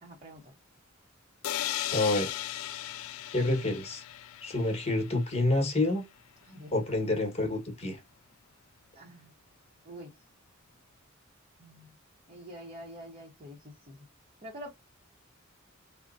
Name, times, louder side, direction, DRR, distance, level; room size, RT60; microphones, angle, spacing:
voice 1, 0.0-0.5 6.4-6.7 8.9-9.3 9.8-10.1 11.6-11.9 12.3-14.0 14.4-14.7, equal, 35° right, 0.8 m, -46 dB
sound 1, 1.4-5.2, left 13 dB, 90° left, 0.3 m, -36 dB
voice 2, 1.9-2.3 3.3-4.0 4.4-6.0 6.7-8.0, left 2 dB, 30° left, 1.2 m, -28 dB
3.9 x 2.1 x 2.4 m
head